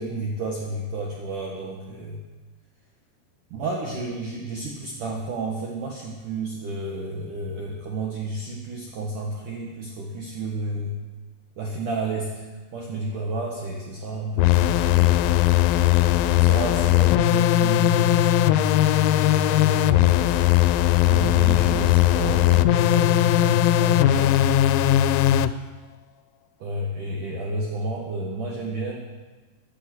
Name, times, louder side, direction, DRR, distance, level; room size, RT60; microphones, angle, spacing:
voice 1, 0.0-2.2 3.5-11.0 11.6-15.3 16.3-20.4 21.1-24.4 26.6-29.0, right 1 dB, 85° right, -1 dB, 1.8 m, -31 dB
sound 1, 14.4-25.5, left 13 dB, 90° left, 3.3 m, -19 dB
15.5 x 10.5 x 6.1 m, 1.3 s
omnidirectional pair, 5.9 m